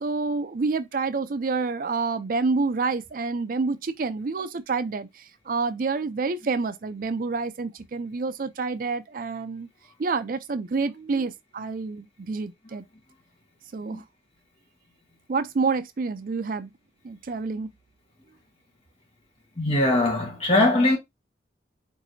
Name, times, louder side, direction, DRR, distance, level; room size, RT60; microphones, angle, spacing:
voice 1, 0.0-9.7 10.0-12.8 13.7-14.0 15.3-16.7 17.0-17.7, right 4 dB, 50° right, 0.4 m, -28 dB
voice 2, 19.6-21.0, left 2 dB, 30° left, 1.5 m, -21 dB
4.5 x 4.1 x 2.6 m
head